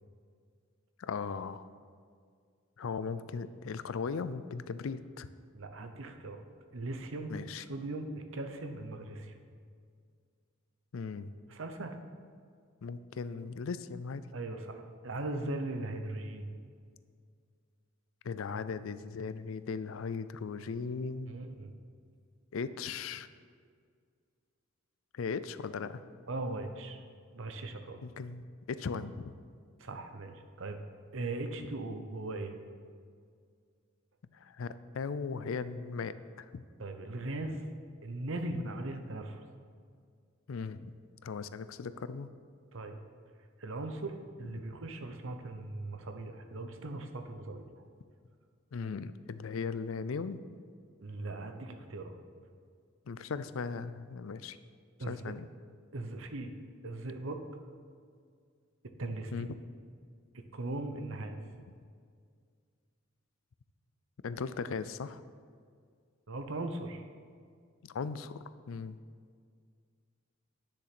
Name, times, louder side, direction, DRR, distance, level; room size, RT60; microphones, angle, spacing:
voice 1, 1.0-1.6 2.8-5.3 7.3-7.6 10.9-11.3 12.8-14.3 18.2-21.4 22.5-23.3 25.1-26.0 28.0-29.4 34.3-36.6 40.5-40.9 41.2-42.3 48.7-50.4 53.1-54.6 55.1-55.5 59.3-59.6 64.2-65.2 67.8-69.0, left 5 dB, 70° left, 14 dB, 0.4 m, -38 dB
voice 2, 5.5-6.4 6.7-9.3 11.5-12.0 14.3-16.5 21.3-21.7 26.3-27.0 27.3-28.0 29.8-30.8 31.1-32.5 36.8-37.6 38.0-39.4 42.7-43.0 43.6-47.6 51.0-52.2 55.0-55.3 55.9-56.5 56.8-57.4 59.0-59.3 60.5-61.4 66.3-67.0, right 2 dB, 70° right, 6 dB, 0.9 m, -39 dB
10.0 x 6.7 x 6.0 m, 2.1 s
head